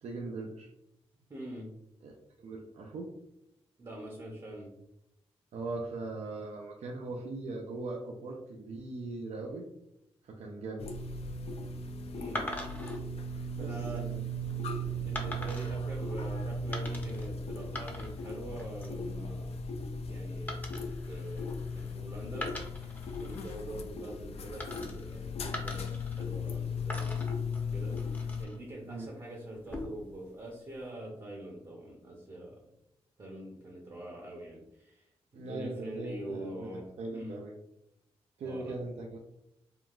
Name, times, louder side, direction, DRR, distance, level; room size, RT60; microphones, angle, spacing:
voice 1, 0.0-0.7 2.0-3.1 5.5-9.6 10.2-10.9 13.6-14.2 28.8-29.1 35.3-37.5 38.4-39.2, right 2 dB, 75° right, 0 dB, 0.4 m, -40 dB
voice 2, 1.3-1.7 3.8-4.7 12.1-12.5 13.6-14.0 15.0-19.6 19.9-22.9 23.2-27.3 27.7-32.6 33.2-35.0 35.3-37.4 38.4-38.7, right 1 dB, 35° right, -2 dB, 0.8 m, -44 dB
sound 1, 10.8-28.5, left 1 dB, 65° left, 0.4 m, -37 dB
sound 2, 12.4-13.0 13.7-14.0 15.2-15.8 16.7-17.3 17.6-18.3 18.6-19.0 20.5-21.9 22.3-23.6 24.6-25.2 25.5-26.6 26.9-28.6 29.5-30.1, left 1 dB, 15° left, 0.7 m, -42 dB
3.7 x 2.2 x 2.4 m, 0.81 s
cardioid pair, 70°, 11 cm